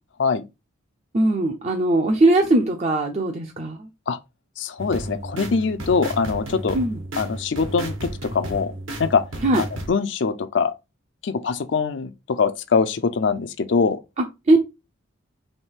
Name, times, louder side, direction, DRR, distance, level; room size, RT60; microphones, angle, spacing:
voice 1, 1.1-3.8 6.7-7.0 9.4-9.6 14.2-14.6, right 2 dB, 35° right, 0.5 m, -20 dB
voice 2, 4.6-6.8 7.2-8.7 9.0-9.2 9.5-10.7 11.2-14.0, left 5 dB, 60° left, 0.5 m, -23 dB
sound 1, 4.8-9.9, right 1 dB, 85° right, 1.4 m, -33 dB
3.4 x 3.2 x 4.4 m
head